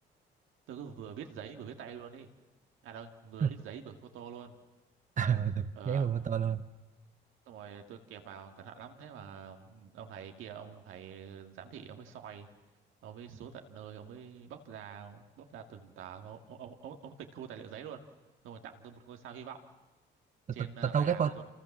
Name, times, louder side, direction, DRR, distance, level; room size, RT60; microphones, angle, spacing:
voice 1, 0.7-2.3 2.8-4.5 5.8-6.1 7.5-12.5 13.0-18.0 18.4-19.6 20.5-21.4, right 8 dB, 90° right, 4 dB, 2.3 m, -46 dB
voice 2, 5.2-6.6 20.6-21.3, right 7 dB, 40° right, 10 dB, 1.0 m, -29 dB
27.5 x 27.5 x 7.4 m, 1.1 s
cardioid pair, 90°, 20 cm